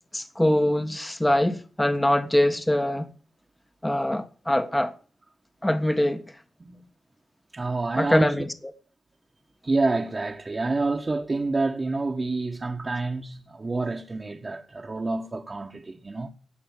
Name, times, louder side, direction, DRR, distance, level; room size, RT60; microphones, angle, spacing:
voice 1, 0.1-3.1 3.8-4.9 5.6-6.2 8.0-8.5, left 1 dB, 15° left, 1.5 m, -23 dB
voice 2, 7.5-8.3 9.6-16.3, right 3 dB, 35° right, 1.5 m, -28 dB
17.5 x 6.2 x 7.5 m
supercardioid pair, 45°, 0 cm